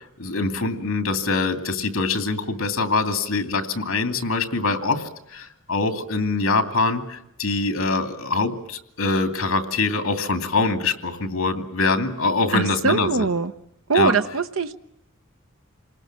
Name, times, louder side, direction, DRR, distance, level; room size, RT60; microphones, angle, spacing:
voice 1, 0.0-13.3 13.9-14.1, left 3 dB, 80° left, 8 dB, 2.6 m, -24 dB
voice 2, 12.5-13.5 13.9-14.8, right 4 dB, 75° right, 9 dB, 0.9 m, -22 dB
28.0 x 19.5 x 7.6 m, 0.82 s
head